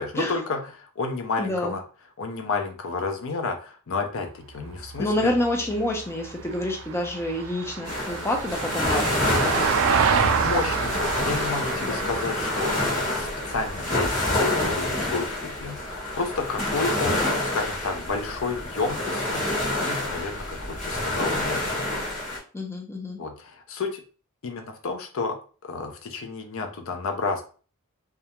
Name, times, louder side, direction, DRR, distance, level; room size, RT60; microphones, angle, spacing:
voice 1, 0.0-1.8 2.2-5.3 9.4-9.7 10.4-17.2 17.5-19.5 19.8-21.7 23.2-24.0 24.4-25.4 25.6-27.4, left 4 dB, 70° left, 3 dB, 0.5 m, -31 dB
voice 2, 1.4-1.7 5.0-9.1 11.8-12.0 22.5-23.2, left 1 dB, 10° left, 1 dB, 0.4 m, -27 dB
Vehicle, 4.6-15.1 17.4-17.5, right 6 dB, 70° right, 0.3 m, -29 dB
sound 1, 7.8-22.4, left 1 dB, 35° left, 1.1 m, -27 dB
2.3 x 2.1 x 2.9 m, 0.38 s
head